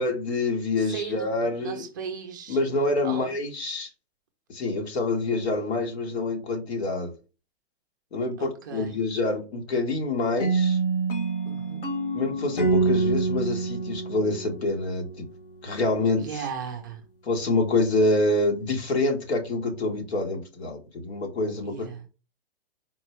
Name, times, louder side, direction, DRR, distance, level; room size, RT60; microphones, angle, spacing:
voice 1, 0.0-1.8 2.5-3.9 4.5-7.1 8.1-10.8 12.1-15.3 15.6-16.4 17.2-22.1, left 2 dB, 85° left, 1.6 m, -26 dB
voice 2, 0.8-1.3 1.6-2.6 3.0-3.3 8.4-9.0 11.4-11.8 16.2-17.0 21.6-22.0, right 7 dB, 20° right, 0.4 m, -36 dB
sound 1, 10.4-15.3, right 3 dB, 60° left, 1.3 m, -26 dB
4.3 x 2.1 x 4.4 m
hypercardioid pair, 170°, 31 cm